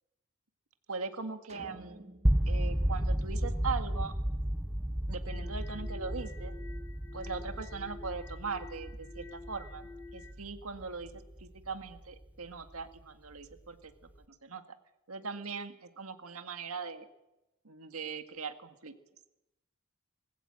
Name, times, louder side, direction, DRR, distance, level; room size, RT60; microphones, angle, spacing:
voice 1, 0.9-2.0 2.5-4.1 5.1-6.5 7.1-13.9 14.3-14.6 15.1-17.1 17.6-18.9, right 5 dB, 80° right, 7 dB, 1.9 m, -40 dB
sound 1, 1.5-3.9, right 2 dB, 30° right, 1.3 m, -52 dB
sound 2, 2.2-12.2, equal, 5° right, 0.6 m, -33 dB
sound 3, 5.3-10.3, left 4 dB, 90° left, 3.8 m, -50 dB
20.5 x 16.5 x 7.7 m, 0.92 s
head